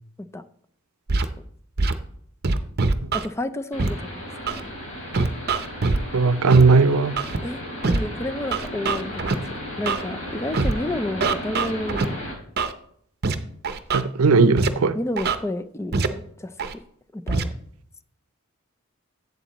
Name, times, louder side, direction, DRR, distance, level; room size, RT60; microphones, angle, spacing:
Scratching (performance technique), 1.1-1.3 1.8-1.9 2.4-3.3 3.8-3.9 4.5-4.6 5.1-6.0 6.5-6.6 7.2-7.4 7.8-8.0 8.5-9.3 9.9-10.0 10.5-10.7 11.2-12.0 12.6-12.7 13.2-13.3 13.6-14.0 14.6-14.7 15.2-15.3 15.9-16.1 16.6-16.7 17.3-17.4, right 3 dB, 50° right, 0.7 m, -23 dB
voice 1, 3.1-4.2 4.6-4.7 7.4-9.4 9.8-12.2 14.9-16.5 17.1-17.5, left 1 dB, 15° left, 0.4 m, -30 dB
sound 1, 3.7-12.3, left 1 dB, 65° left, 4.1 m, -35 dB
voice 2, 6.1-7.2 13.9-15.0, right 4 dB, 90° right, 0.5 m, -17 dB
11.0 x 8.3 x 3.0 m
head